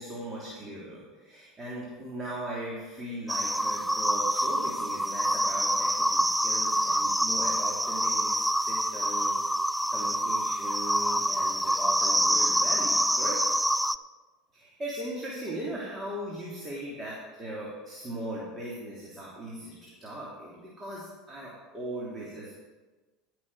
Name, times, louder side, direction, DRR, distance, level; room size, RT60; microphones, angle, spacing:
voice 1, 0.0-9.5 9.9-13.4 14.5-22.5, right 1 dB, 25° right, -5 dB, 3.1 m, -39 dB
sound 1, 3.3-14.0, equal, ahead, 0.3 m, -26 dB
16.0 x 6.5 x 4.9 m, 1.3 s
hypercardioid pair, 80°, 0 cm